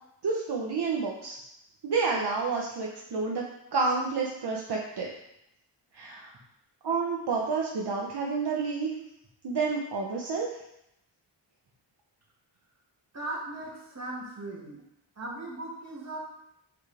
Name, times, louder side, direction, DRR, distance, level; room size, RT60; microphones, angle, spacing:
voice 1, 0.2-1.4 1.8-3.5 3.7-5.1 5.9-6.3 6.8-8.9 9.4-10.5, right 4 dB, 60° right, -2 dB, 1.0 m, -29 dB
voice 2, 13.1-14.8 15.2-16.2, right 2 dB, 35° right, -3 dB, 2.0 m, -38 dB
7.9 x 4.8 x 3.4 m, 0.81 s
wide cardioid pair, 100°, 45 cm